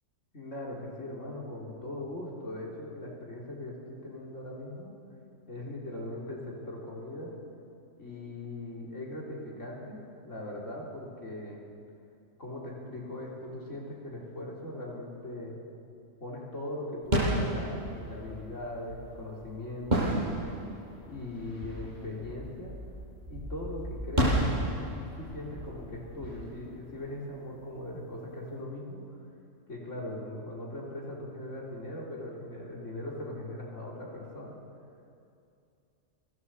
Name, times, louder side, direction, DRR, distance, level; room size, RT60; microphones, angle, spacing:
voice 1, 0.3-4.9 5.5-7.4 8.0-11.6 12.4-15.6 16.2-20.2 21.1-22.8 23.3-24.4 24.9-29.2 29.7-34.6, left 1 dB, 75° left, -3 dB, 4.1 m, -40 dB
sound 1, 17.0-27.6, right 1 dB, 35° right, 8.3 m, -33 dB
27.0 x 17.5 x 7.8 m, 2.5 s
omnidirectional pair, 1.3 m